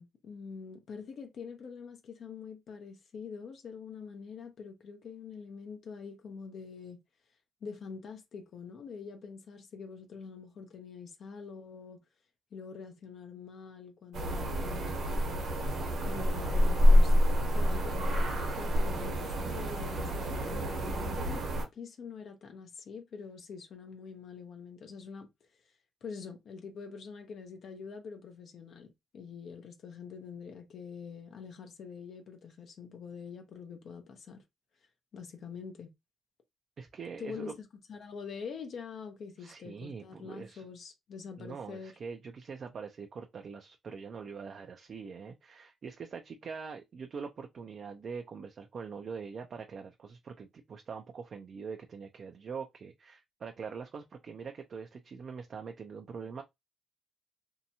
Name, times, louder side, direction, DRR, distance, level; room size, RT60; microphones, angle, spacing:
voice 1, 0.0-7.0 7.6-12.0 12.5-15.0 16.1-21.4 21.7-25.3 26.0-34.4 35.1-35.9 37.2-42.0, left 5 dB, 60° left, 0.6 m, -45 dB
sound 1, 14.1-21.6, equal, 65° right, 1.1 m, -27 dB
voice 2, 36.8-37.5 39.4-40.7 41.4-56.4, right 5 dB, 50° right, 0.4 m, -43 dB
2.7 x 2.2 x 2.8 m
cardioid pair, 90°, 0 cm